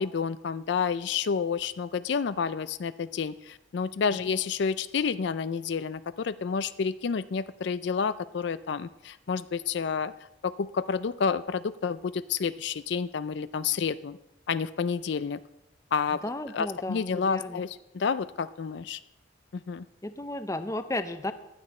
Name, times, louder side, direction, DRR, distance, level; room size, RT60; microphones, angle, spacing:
voice 1, 0.0-10.1 10.4-14.2 14.5-15.4 15.9-16.2 16.5-19.0 19.7-19.9, left 6 dB, 60° left, 15 dB, 0.4 m, -29 dB
voice 2, 16.2-17.6 20.0-21.3, left 1 dB, 15° left, 10 dB, 0.6 m, -34 dB
15.5 x 11.0 x 4.3 m, 0.91 s
head